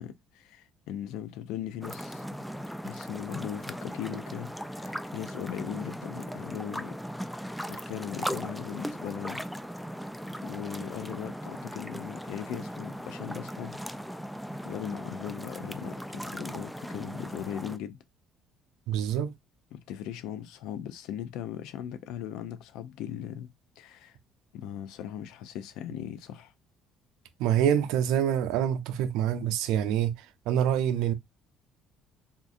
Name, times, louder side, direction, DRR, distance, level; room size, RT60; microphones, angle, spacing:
voice 1, 0.0-2.3 2.8-7.0 7.3-9.4 10.4-13.8 14.7-18.0 19.7-24.2 24.5-26.5, left 10 dB, 80° left, 0.5 m, -39 dB
sound 1, 1.8-17.8, equal, ahead, 0.3 m, -38 dB
voice 2, 18.9-19.3 27.4-31.1, right 9 dB, 80° right, 0.5 m, -26 dB
3.6 x 2.5 x 2.5 m
cardioid pair, 100°, 0 cm